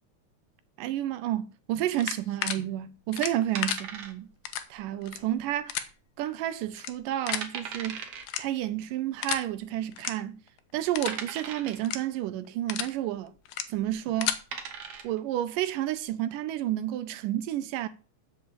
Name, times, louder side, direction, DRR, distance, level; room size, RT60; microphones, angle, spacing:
voice 1, 0.8-4.3 4.7-5.9 6.2-8.1 8.4-10.4 10.7-13.3 13.7-14.4 15.0-17.9, right 12 dB, 85° right, 2.3 m, -30 dB
sound 1, 1.9-2.6 3.1-3.8 4.5-4.6 5.0-5.2 5.7-5.8 6.7-6.9 7.3-7.5 8.2-8.7 9.2-9.4 9.9-10.1 10.5-10.6 10.9-11.2 11.8-12.0 12.5-12.9 13.5-13.6 14.0-14.4, left 11 dB, 85° left, 2.5 m, -31 dB
sound 2, 3.5-4.5 4.8-4.9 5.5-5.9 6.3-6.4 6.9-7.0 7.3-8.2 9.3-9.4 10.1-10.2 11.1-11.9 13.7-13.9 14.3-15.2, right 6 dB, 55° right, 1.8 m, -38 dB
7.7 x 6.8 x 7.1 m
omnidirectional pair, 3.8 m